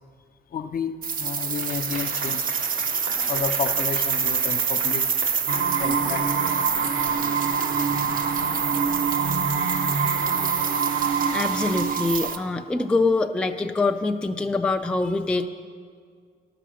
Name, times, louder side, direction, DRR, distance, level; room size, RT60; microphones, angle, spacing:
voice 1, 0.5-2.5 3.3-5.1 5.8-6.3, left 7 dB, 45° left, 8 dB, 0.6 m, -31 dB
sound 1, 1.0-12.4, right 6 dB, 45° right, 0.6 m, -27 dB
Applause / Crowd, 1.5-8.4, right 3 dB, 90° right, 1.3 m, -39 dB
sound 2, 5.5-12.4, right 6 dB, 70° right, 0.9 m, -25 dB
voice 2, 11.3-15.5, left 3 dB, 5° left, 5 dB, 0.3 m, -24 dB
11.0 x 6.8 x 6.2 m, 2.1 s
cardioid pair, 90°, 20 cm